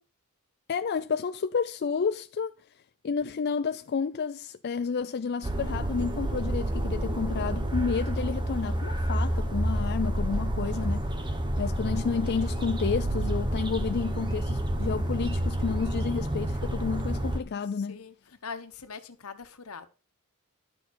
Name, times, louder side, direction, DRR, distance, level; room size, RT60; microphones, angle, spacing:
voice 1, 0.7-2.5 3.0-11.0 11.6-18.0, left 5 dB, 50° left, 0.4 m, -30 dB
sound 1, 5.4-17.4, right 1 dB, 20° right, 1.0 m, -29 dB
voice 2, 18.4-19.9, left 5 dB, 80° left, 1.2 m, -41 dB
11.5 x 6.5 x 4.3 m
head